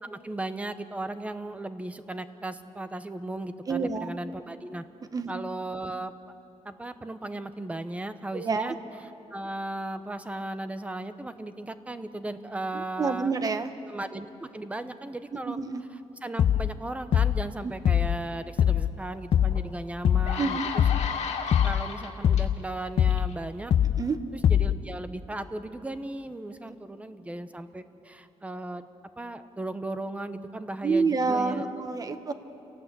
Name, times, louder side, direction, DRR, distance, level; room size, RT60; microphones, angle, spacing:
voice 1, 0.0-4.8 5.3-6.1 6.6-8.8 9.3-13.3 13.9-15.6 16.2-20.6 21.6-23.7 24.5-28.9 29.2-31.7, right 2 dB, 10° right, 10 dB, 0.9 m, -36 dB
voice 2, 3.7-4.1 5.1-5.3 8.3-8.7 12.7-13.7 15.3-15.8 17.6-17.7 20.4-20.7 24.0-24.2 30.8-32.3, right 4 dB, 35° right, 9 dB, 1.1 m, -28 dB
sound 1, 16.4-16.8 17.1-17.5 17.8-18.2 18.6-19.0 19.3-19.7 20.0-20.4 20.8-21.2 21.5-21.9 22.2-22.6 23.0-23.3 23.7-24.1 24.4-24.8, left 9 dB, 55° left, 0.5 m, -23 dB
sound 2, 19.5-19.6 20.1-22.4 23.1-23.3, left 5 dB, 85° left, 2.2 m, -33 dB
28.5 x 18.0 x 8.2 m, 2.9 s
wide cardioid pair, 160°, 11 cm